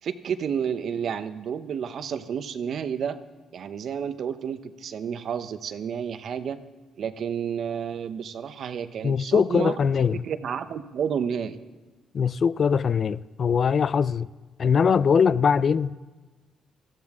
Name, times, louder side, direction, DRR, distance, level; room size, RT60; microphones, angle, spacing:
voice 1, 0.0-3.2 3.5-6.6 7.0-9.7 10.1-11.6, right 7 dB, 60° right, 0.8 m, -30 dB
voice 2, 9.0-10.2 12.1-14.3 14.6-15.9, left 6 dB, 50° left, 0.3 m, -22 dB
18.0 x 14.0 x 3.6 m
cardioid pair, 90°, 0 cm